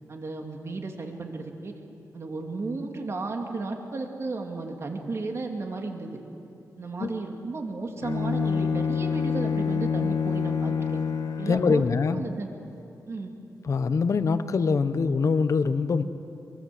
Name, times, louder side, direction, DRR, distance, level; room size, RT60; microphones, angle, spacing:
voice 1, 0.1-1.7 2.1-6.2 6.8-10.9 11.4-12.5 13.1-13.3, right 3 dB, 45° right, 2 dB, 2.7 m, -34 dB
Bowed string instrument, 8.0-12.1, left 6 dB, 90° left, 1.4 m, -27 dB
voice 2, 11.5-12.2 13.6-16.0, left 5 dB, 55° left, 11 dB, 1.1 m, -24 dB
24.5 x 23.5 x 7.9 m, 2.7 s
wide cardioid pair, 130°, 6 cm